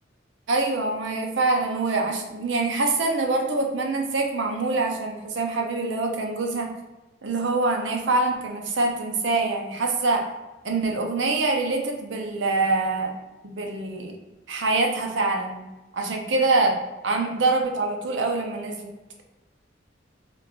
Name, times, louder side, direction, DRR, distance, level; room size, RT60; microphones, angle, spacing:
voice 1, 0.5-6.7 7.2-10.3 10.6-13.1 13.4-14.2 14.5-15.6 15.9-16.8 17.0-18.9, right 3 dB, 70° right, 3 dB, 0.6 m, -25 dB
3.1 x 2.5 x 4.2 m, 1.1 s
head